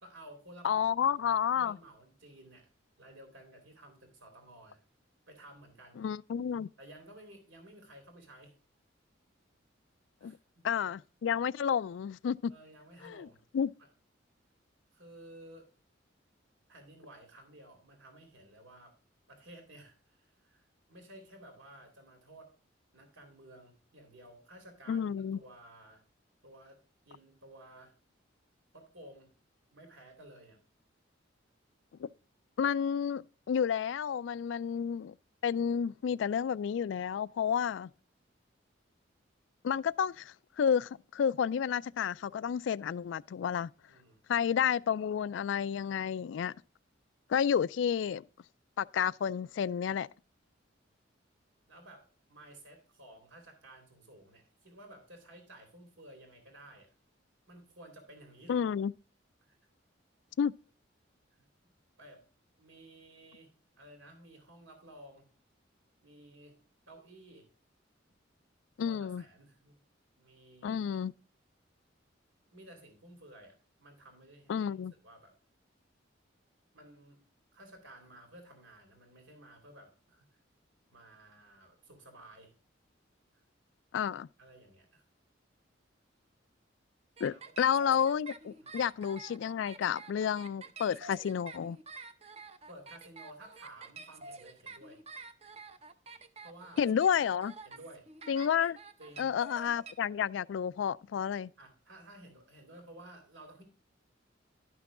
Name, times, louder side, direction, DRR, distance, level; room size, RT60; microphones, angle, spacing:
voice 1, 0.0-2.7 3.0-4.8 5.3-6.0 6.8-8.5 10.2-10.7 12.5-13.4 13.8-13.9 14.9-15.7 16.7-19.0 19.3-22.5 22.9-26.0 26.4-26.8 27.0-27.9 28.7-29.3 29.7-30.6 43.9-44.2 51.7-56.9 57.5-58.6 59.4-59.6 62.0-62.2 62.6-63.5 63.8-65.3 66.0-66.6 66.9-67.5 68.8-69.7 70.2-71.0 72.5-74.7 75.0-75.3 76.7-77.2 77.5-80.4 80.9-82.5 83.3-83.4 84.4-85.0 87.3-87.5 88.6-88.8 92.7-95.0 96.4-96.9 97.7-98.1 99.0-99.3 101.6-103.6, right 1 dB, 85° right, 2.5 m, -54 dB
voice 2, 0.6-1.8 6.0-6.7 10.2-10.4 10.6-12.5 13.0-13.3 13.5-13.7 24.9-25.4 32.0-32.1 32.6-35.1 35.4-37.9 39.6-43.7 44.3-46.5 47.3-48.2 48.8-50.1 58.5-58.9 60.4-60.5 68.8-69.2 70.6-71.1 74.5-74.9 83.9-84.3 87.2-91.8 96.8-97.5 98.3-98.8 99.2-101.5, left 8 dB, 65° left, 0.3 m, -31 dB
sound 1, 87.2-99.9, right 4 dB, 35° right, 0.7 m, -49 dB
12.0 x 6.0 x 3.6 m
head